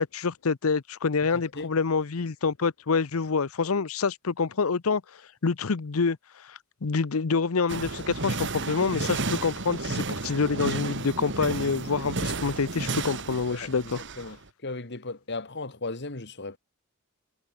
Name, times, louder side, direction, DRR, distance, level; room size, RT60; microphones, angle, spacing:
voice 1, 0.0-5.0 5.4-6.2 6.5-14.0, left 4 dB, 75° left, 0.7 m, -27 dB
voice 2, 1.3-1.7 13.5-16.6, left 3 dB, 55° left, 2.5 m, -37 dB
sound 1, 7.7-14.3, right 3 dB, 60° right, 2.7 m, -32 dB
head